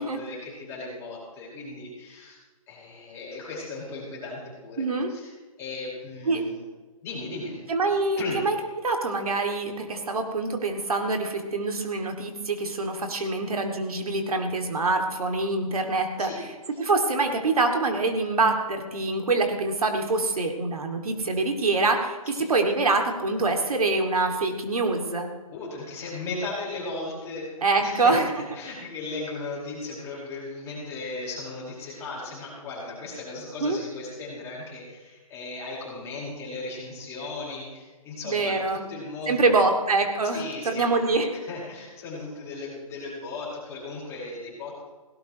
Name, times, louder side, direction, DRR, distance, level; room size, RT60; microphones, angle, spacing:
voice 1, 0.0-2.4 2.7-5.3 5.6-6.6 7.0-7.6 8.2-8.4 16.2-16.4 22.3-22.5 25.5-28.2 28.5-39.5 40.2-41.0 41.5-44.8, left 3 dB, 15° left, -5 dB, 4.9 m, -36 dB
voice 2, 4.8-5.1 6.3-6.4 7.7-16.5 16.8-25.3 27.6-28.3 33.6-33.8 38.2-38.8 39.3-41.4, right 3 dB, 80° right, 4 dB, 2.4 m, -25 dB
17.5 x 17.0 x 3.1 m, 1.3 s
hypercardioid pair, 160°, 18 cm